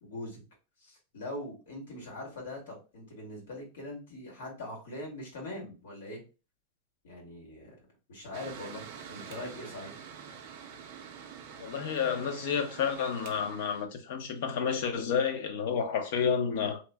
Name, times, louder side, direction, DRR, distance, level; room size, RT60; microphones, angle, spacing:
voice 1, 0.0-0.4 0.8-6.2 7.0-10.0, left 1 dB, 90° left, 1.7 m, -42 dB
Mechanical fan, 8.3-13.9, right 7 dB, 45° right, 0.4 m, -46 dB
voice 2, 11.6-16.8, left 7 dB, 55° left, 0.6 m, -30 dB
2.9 x 2.1 x 3.3 m
supercardioid pair, 170°, 0 cm